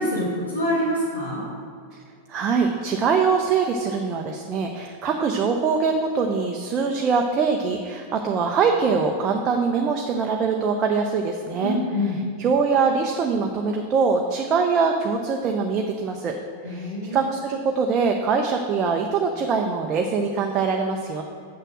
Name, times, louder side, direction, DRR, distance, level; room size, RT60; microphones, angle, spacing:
voice 1, 0.0-1.5 11.6-12.2 16.6-17.2, left 1 dB, 80° left, -7 dB, 1.9 m, -25 dB
voice 2, 2.3-16.4 16.6-21.2, right 5 dB, 30° right, 2 dB, 0.7 m, -23 dB
7.4 x 6.7 x 6.0 m, 2.3 s
figure-of-eight pair, 90°, 0 cm